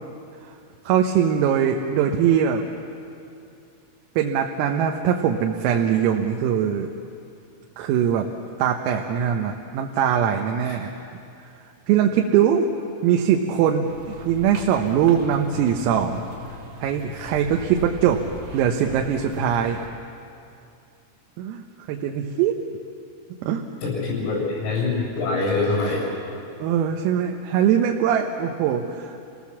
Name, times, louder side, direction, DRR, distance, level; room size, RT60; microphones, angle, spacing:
voice 1, 0.9-2.6 4.2-6.9 7.8-8.3 8.6-10.9 11.9-12.7 13.0-16.2 16.8-18.2 18.5-19.8 21.4-22.6 23.4-23.6 26.6-29.2, right 8 dB, 85° right, 2 dB, 3.7 m, -21 dB
sound 1, 13.9-19.9, equal, 65° right, 4.4 m, -39 dB
voice 2, 23.8-26.1, left 3 dB, 75° left, -4 dB, 10.0 m, -24 dB
29.5 x 18.5 x 7.2 m, 2.6 s
omnidirectional pair, 6.0 m